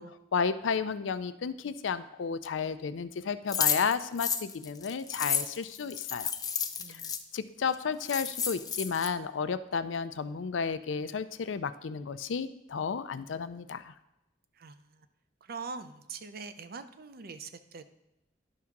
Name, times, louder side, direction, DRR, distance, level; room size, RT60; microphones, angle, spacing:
voice 1, 0.3-6.3 6.9-7.0 7.3-13.9, left 6 dB, 80° left, 13 dB, 0.5 m, -32 dB
sound 1, 3.5-7.2 7.7-7.8 8.0-9.1, left 7 dB, 20° left, 0.5 m, -31 dB
voice 2, 6.8-7.2 14.5-15.1 15.4-17.9, right 4 dB, 55° right, 10 dB, 0.6 m, -43 dB
11.0 x 3.7 x 5.9 m, 0.89 s
head